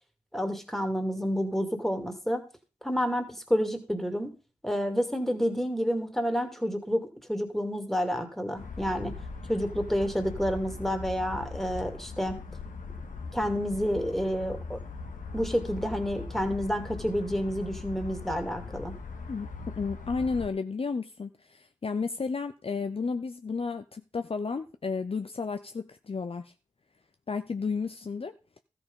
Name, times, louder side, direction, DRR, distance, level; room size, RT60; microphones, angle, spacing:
voice 1, 0.3-2.4 2.8-4.3 4.6-9.1 9.5-12.4 13.3-14.8 15.3-19.0, equal, ahead, 2.3 m, -29 dB
sound 1, 8.6-20.5, left 4 dB, 75° left, 1.5 m, -40 dB
voice 2, 19.8-26.5 27.3-28.3, left 4 dB, 45° left, 0.6 m, -32 dB
13.5 x 6.0 x 5.3 m
wide cardioid pair, 65°, 14 cm